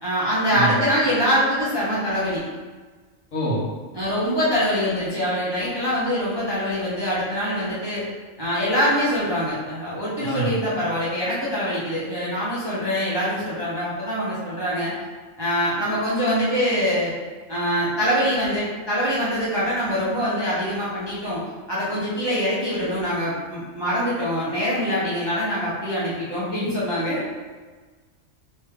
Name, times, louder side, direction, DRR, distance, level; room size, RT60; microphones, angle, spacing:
voice 1, 0.0-2.4 3.9-8.0 8.4-14.9 15.4-17.1 17.5-21.4 21.7-27.2, equal, 30° right, -8 dB, 0.5 m, -24 dB
voice 2, 3.3-3.7 10.2-10.6, right 2 dB, 70° left, -7 dB, 1.5 m, -25 dB
3.2 x 2.8 x 3.4 m, 1.4 s
omnidirectional pair, 1.4 m